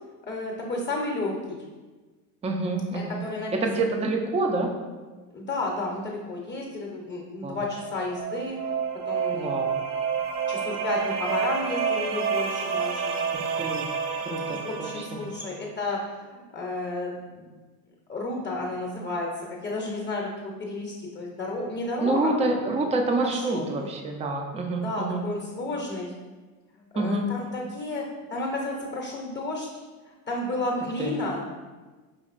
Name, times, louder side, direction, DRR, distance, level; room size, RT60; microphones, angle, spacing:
voice 1, 0.2-1.6 2.9-3.5 5.3-8.6 9.0-9.5 10.5-13.2 14.5-17.5 18.1-22.3 23.2-23.7 24.7-26.1 26.7-29.7 30.1-31.4, left 2 dB, 25° left, -1 dB, 0.7 m, -32 dB
voice 2, 2.4-3.2 3.5-4.7 7.4-7.6 9.3-9.7 13.3-13.9 14.2-15.2 22.0-25.2 27.0-27.3 31.0-31.1, right 2 dB, 15° right, 3 dB, 0.4 m, -27 dB
sound 1, 7.7-15.5, right 6 dB, 65° right, 0.6 m, -29 dB
5.3 x 2.8 x 2.5 m, 1.3 s
supercardioid pair, 85°, 45 cm